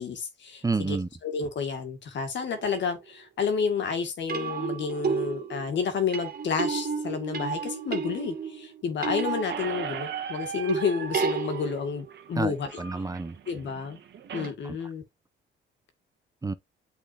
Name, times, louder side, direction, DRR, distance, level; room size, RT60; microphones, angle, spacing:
voice 1, 0.0-1.0 1.2-12.8 13.5-14.0 14.3-15.0, left 6 dB, 65° left, 2.0 m, -30 dB
voice 2, 0.6-1.1 12.4-13.4 14.6-14.8 16.4-16.5, right 3 dB, 15° right, 0.7 m, -29 dB
sound 1, 2.5-2.9 4.3-10.2 10.7-12.1 14.4-14.5, right 6 dB, 45° right, 2.1 m, -32 dB
Squeak, 9.5-14.5, right 7 dB, 65° right, 1.3 m, -38 dB
8.5 x 4.3 x 2.7 m
cardioid pair, 90°, 20 cm